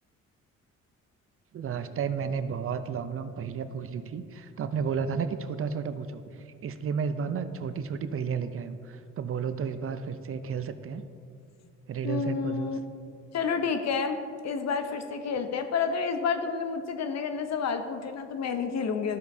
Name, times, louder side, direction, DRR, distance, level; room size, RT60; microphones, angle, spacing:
voice 1, 1.5-11.0 11.9-12.8, right 6 dB, 45° right, 11 dB, 0.5 m, -32 dB
voice 2, 12.0-12.8 13.3-14.2 14.4-19.2, left 5 dB, 60° left, 8 dB, 0.8 m, -29 dB
12.5 x 7.0 x 2.7 m, 2.3 s
cardioid pair, 90°, 30 cm